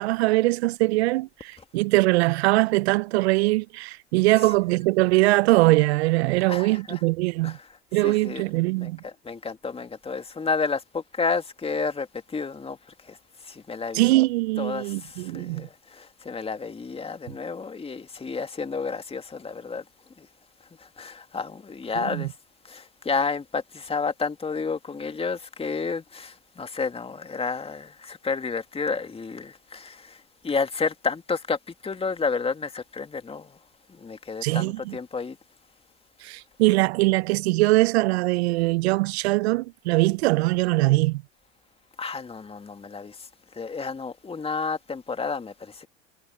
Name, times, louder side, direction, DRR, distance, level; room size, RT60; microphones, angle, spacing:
voice 1, 0.0-7.6 7.9-9.0 13.9-15.7 22.1-22.2 34.4-35.0 36.2-41.2, right 21 dB, 70° right, 0.9 m, -22 dB
voice 2, 6.5-7.0 7.4-7.7 7.9-8.5 8.8-12.8 13.0-13.2 13.4-14.0 14.6-19.8 20.2-20.3 20.8-22.3 22.6-33.6 33.9-35.4 42.0-43.3 43.5-45.9, left 4 dB, 15° left, 2.5 m, -31 dB
hypercardioid pair, 90°, 34 cm